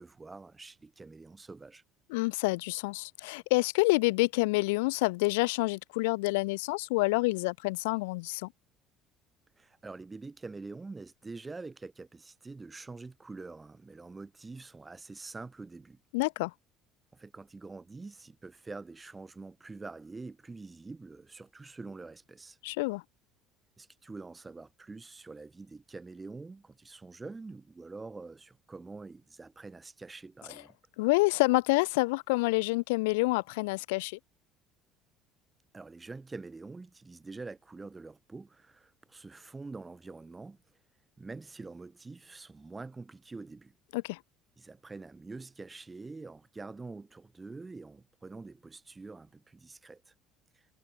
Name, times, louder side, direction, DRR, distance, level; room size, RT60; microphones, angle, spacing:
voice 1, 0.0-1.8 9.6-16.0 17.1-22.6 23.8-30.8 35.7-40.6 41.2-43.7 44.6-50.1, right 3 dB, 20° right, 4.6 m, -46 dB
voice 2, 2.1-8.5 16.1-16.5 22.6-23.0 31.0-34.2 43.9-44.2, left 24 dB, 85° left, 0.5 m, -28 dB
supercardioid pair, 80°, 0 cm